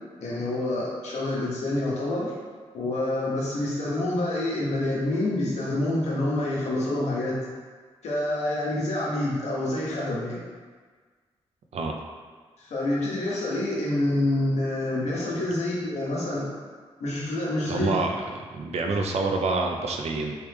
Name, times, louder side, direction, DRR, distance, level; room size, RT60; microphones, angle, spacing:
voice 1, 0.2-2.3 2.7-7.4 8.0-10.4 12.6-16.5 17.0-17.9, left 1 dB, 80° left, -5 dB, 1.0 m, -27 dB
voice 2, 17.7-18.1 18.5-20.3, right 3 dB, 70° right, 2 dB, 0.5 m, -27 dB
3.3 x 3.1 x 3.3 m, 1.5 s
cardioid pair, 60°, 11 cm